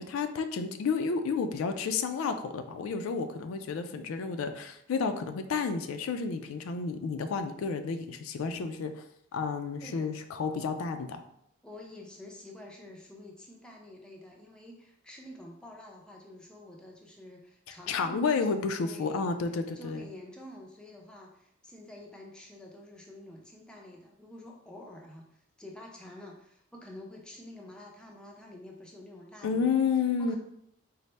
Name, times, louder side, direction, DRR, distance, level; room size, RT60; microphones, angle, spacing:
voice 1, 0.0-9.0 9.3-11.2 17.9-20.0 29.4-30.4, left 5 dB, 85° left, 8 dB, 0.3 m, -31 dB
voice 2, 9.8-10.1 11.6-18.5 18.8-19.3 19.7-29.7 30.2-30.4, left 1 dB, 5° left, -1 dB, 0.4 m, -48 dB
4.0 x 2.0 x 3.2 m, 0.73 s
head